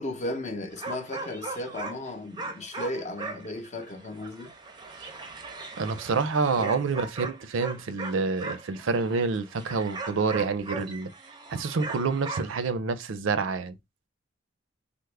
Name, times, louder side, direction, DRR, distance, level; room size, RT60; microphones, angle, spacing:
voice 1, 0.0-4.5 6.6-6.7, left 1 dB, 35° left, 0.7 m, -35 dB
sound 1, 0.7-2.1 2.4-12.7, right 3 dB, 20° right, 0.5 m, -39 dB
voice 2, 5.8-11.1 11.5-13.7, right 4 dB, 80° right, 0.5 m, -27 dB
3.4 x 2.0 x 3.2 m
head